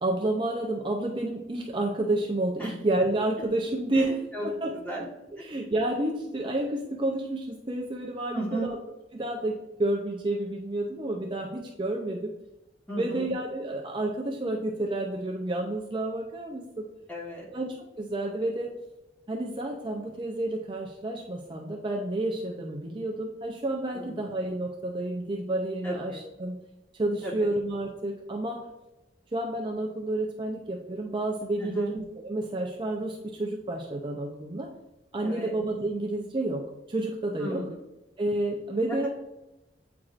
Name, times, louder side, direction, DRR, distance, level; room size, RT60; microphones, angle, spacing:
voice 1, 0.0-4.2 4.4-4.7 5.0-5.1 5.4-8.8 9.1-12.3 13.0-16.8 17.5-18.7 19.3-26.6 27.0-28.6 29.3-34.7 35.1-37.6 38.2-39.1, right 1 dB, 25° right, 0 dB, 0.5 m, -30 dB
voice 2, 3.9-4.5 4.7-5.1 5.4-5.5 8.3-8.7 12.9-13.3 17.1-17.5 23.9-24.3 25.8-26.2 27.2-27.3 31.6-31.9 35.2-35.5 37.4-37.8 38.9-39.1, right 1 dB, 10° left, -3 dB, 1.3 m, -35 dB
8.4 x 4.6 x 2.5 m, 0.94 s
head